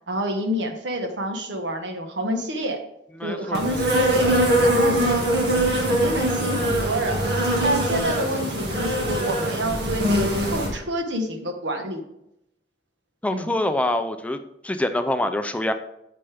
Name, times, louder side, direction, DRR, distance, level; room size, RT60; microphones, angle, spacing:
voice 1, 0.1-2.8 3.2-4.3 4.6-7.2 7.6-12.0 13.3-13.6, right 1 dB, 80° right, 5 dB, 1.3 m, -28 dB
voice 2, 3.2-3.8 13.2-14.4 14.6-15.7, left 1 dB, 10° left, 8 dB, 0.4 m, -25 dB
Insect, 3.5-10.7, right 1 dB, 60° right, 1.9 m, -22 dB
8.9 x 6.7 x 3.5 m, 0.81 s
head